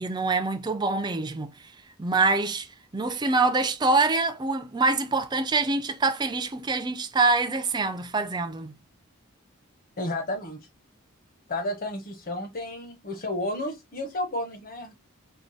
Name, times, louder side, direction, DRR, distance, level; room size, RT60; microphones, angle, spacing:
voice 1, 0.0-1.5 2.0-2.7 2.9-8.7, right 3 dB, 20° right, 0.4 m, -25 dB
voice 2, 10.0-10.6 11.5-14.9, left 1 dB, 40° left, 1.1 m, -32 dB
4.6 x 2.3 x 4.1 m
head